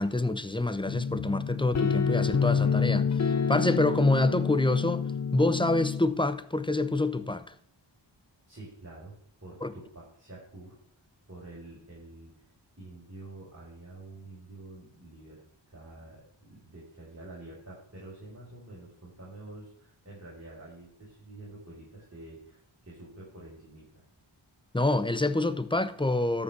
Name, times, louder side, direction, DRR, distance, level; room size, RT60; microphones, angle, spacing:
voice 1, 0.0-5.0 5.3-7.5 9.6-9.7 24.7-26.4, left 2 dB, 10° left, 0.9 m, -27 dB
sound 1, 0.9-6.0, left 6 dB, 40° left, 0.7 m, -28 dB
voice 2, 8.5-10.7 11.3-12.3 12.8-24.0, right 2 dB, 35° right, 5.0 m, -48 dB
13.0 x 5.6 x 6.9 m
cardioid pair, 40°, 46 cm